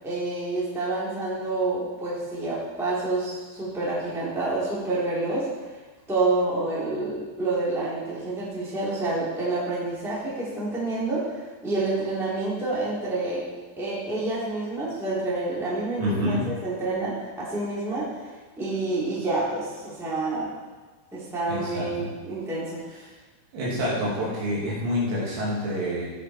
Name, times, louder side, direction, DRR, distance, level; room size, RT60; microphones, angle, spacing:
voice 1, 0.0-5.5 6.1-13.4 13.8-18.3 18.6-20.5 21.1-22.8, right 2 dB, ahead, -8 dB, 2.6 m, -28 dB
voice 2, 16.0-16.6 21.5-22.1 23.5-26.1, equal, 65° right, -6 dB, 4.9 m, -27 dB
16.0 x 7.6 x 4.6 m, 1.3 s
omnidirectional pair, 5.5 m